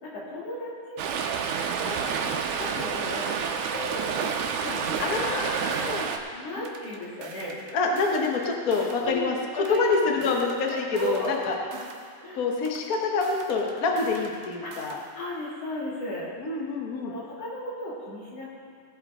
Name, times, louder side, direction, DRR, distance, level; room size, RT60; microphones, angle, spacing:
voice 1, 0.0-1.0 1.8-5.4 6.3-7.8 9.0-10.4 10.9-11.5 12.2-12.5 14.6-14.7 15.1-16.6 17.0-18.7, equal, 55° left, -6 dB, 3.6 m, -35 dB
Stream, 1.0-6.2, right 6 dB, 90° right, 2.2 m, -29 dB
sound 1, 3.7-6.1 6.7-9.1 9.7-12.1 12.6-15.1, right 5 dB, 75° right, 2.3 m, -46 dB
voice 2, 5.0-6.6 7.7-11.5 12.3-15.0 16.4-17.1, left 4 dB, 75° left, 1 dB, 0.8 m, -27 dB
17.5 x 9.0 x 3.7 m, 2.1 s
omnidirectional pair, 3.4 m